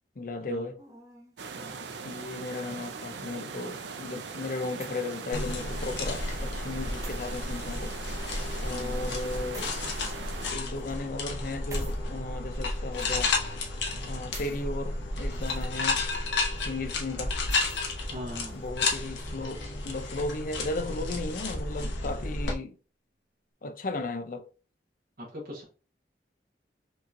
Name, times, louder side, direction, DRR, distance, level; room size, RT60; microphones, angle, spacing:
voice 1, 0.2-0.8 2.0-7.9 8.6-9.8 10.5-13.3 13.9-16.0 16.7-17.3 18.5-22.7 23.6-24.5, left 2 dB, 50° left, 0.5 m, -35 dB
sound 1, 0.8-1.4 2.3-3.0 4.3-5.2 5.7-5.8 7.0-7.2 8.1-8.2 9.5-9.8 10.6-10.9 11.7-12.0 12.9-13.5 14.3-14.6 15.2-15.7 16.1-16.2 17.4-17.9 18.5-18.7, right 3 dB, 20° right, 0.7 m, -50 dB
sound 2, 1.4-10.5, right 5 dB, 90° right, 0.6 m, -40 dB
voice 2, 1.5-1.9 8.7-9.1 18.1-18.6 25.2-25.6, left 1 dB, 60° right, 1.2 m, -41 dB
sound 3, 5.3-22.5, left 3 dB, 90° left, 1.0 m, -32 dB
5.3 x 2.8 x 2.5 m
head